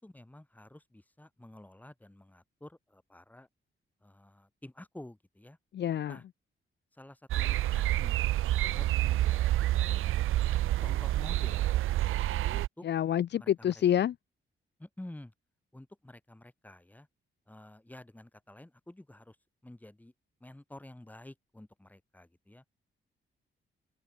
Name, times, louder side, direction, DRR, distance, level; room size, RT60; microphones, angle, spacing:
voice 1, 0.0-3.5 4.0-5.6 6.1-6.2 6.9-8.3 8.6-10.2 10.8-11.7 12.5-12.9 13.4-13.7 14.8-15.3 15.7-17.1 17.5-19.4 19.6-20.1 20.4-22.6, left 1 dB, 10° left, 7.1 m, -50 dB
voice 2, 5.7-6.2 12.8-14.1, left 10 dB, 55° left, 0.7 m, -28 dB
sound 1, 7.3-12.7, right 14 dB, 85° right, 0.4 m, -28 dB
wide cardioid pair, 155°, 21 cm